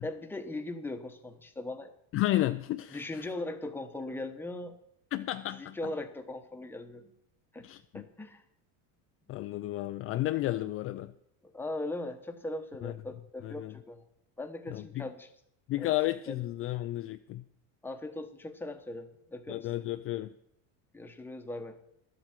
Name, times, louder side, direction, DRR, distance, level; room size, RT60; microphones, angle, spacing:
voice 1, 0.0-1.9 2.9-4.8 5.5-7.1 7.5-7.7 7.9-8.4 11.4-14.0 14.4-15.3 15.8-15.9 16.3-16.4 17.8-19.8 20.9-21.8, left 2 dB, 5° left, 1.0 m, -39 dB
voice 2, 2.1-3.0 5.1-5.8 7.6-8.0 9.3-11.1 12.8-12.9 13.4-13.7 14.7-15.0 15.7-17.4 19.5-20.3, left 15 dB, 40° left, 0.4 m, -32 dB
12.5 x 8.0 x 7.3 m
cardioid pair, 135°, 35 cm